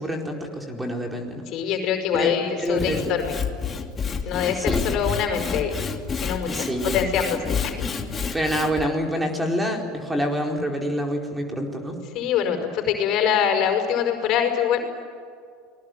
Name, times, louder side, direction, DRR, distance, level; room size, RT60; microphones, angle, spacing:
voice 1, 0.0-1.4 2.1-3.1 4.5-5.0 6.4-7.1 8.3-12.0, equal, 10° right, 2 dB, 4.6 m, -27 dB
voice 2, 1.5-3.4 4.2-5.8 6.2-6.7 6.9-7.7 12.1-14.9, left 8 dB, 60° left, 5 dB, 5.4 m, -24 dB
Sawing / Wood, 2.6-8.9, left 6 dB, 25° left, 2.7 m, -29 dB
29.5 x 20.5 x 9.5 m, 2.2 s
supercardioid pair, 100°, 0 cm